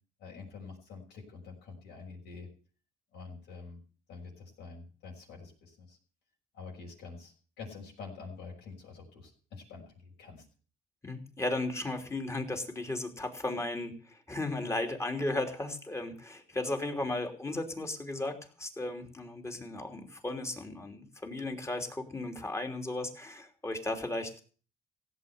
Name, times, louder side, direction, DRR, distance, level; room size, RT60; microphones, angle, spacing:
voice 1, 0.2-2.5 3.1-3.8 4.1-6.0 6.5-10.4, left 4 dB, 80° left, -2 dB, 6.0 m, -47 dB
voice 2, 11.0-24.4, left 2 dB, 15° left, 4 dB, 3.1 m, -35 dB
16.5 x 8.1 x 8.0 m, 0.41 s
cardioid pair, 110°, 17 cm